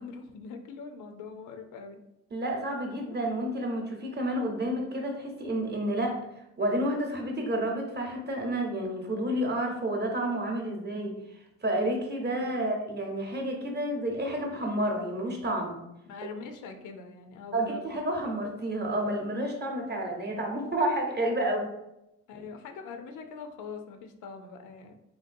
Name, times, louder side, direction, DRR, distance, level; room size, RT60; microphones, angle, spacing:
voice 1, 0.0-2.0 12.2-12.7 16.1-17.8 22.3-24.9, left 5 dB, 80° left, 5 dB, 0.5 m, -43 dB
voice 2, 2.3-6.2 6.6-15.7 17.5-21.7, right 1 dB, 35° right, 1 dB, 0.8 m, -30 dB
3.1 x 2.6 x 2.5 m, 0.86 s
cardioid pair, 90°, 30 cm